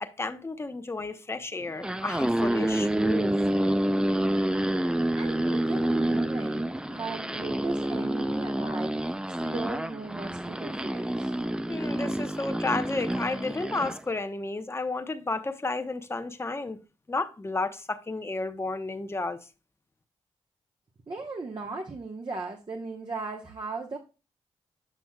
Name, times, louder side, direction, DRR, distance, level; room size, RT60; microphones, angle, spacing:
voice 1, 0.0-3.4 11.7-16.8 17.1-19.4, left 3 dB, 20° left, 0.9 m, -32 dB
sound 1, 1.7-14.0, right 1 dB, 5° right, 0.5 m, -28 dB
voice 2, 5.2-11.3 21.1-24.0, right 3 dB, 40° right, 1.1 m, -37 dB
8.0 x 6.0 x 2.3 m
cardioid pair, 60°, 12 cm